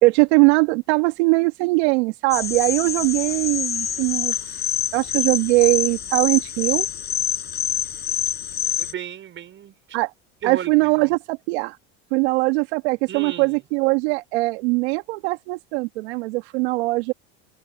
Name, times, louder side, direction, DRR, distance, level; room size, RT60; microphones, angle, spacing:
voice 1, 0.0-6.9 9.9-10.1 10.4-11.8 12.1-17.1, right 25 dB, 75° right, 1.6 m, -21 dB
sound 1, 2.3-8.9, left 10 dB, 30° left, 5.5 m, -26 dB
voice 2, 8.8-10.0 10.4-11.2 13.1-13.6, right 10 dB, 35° right, 5.2 m, -35 dB
supercardioid pair, 120°, 33 cm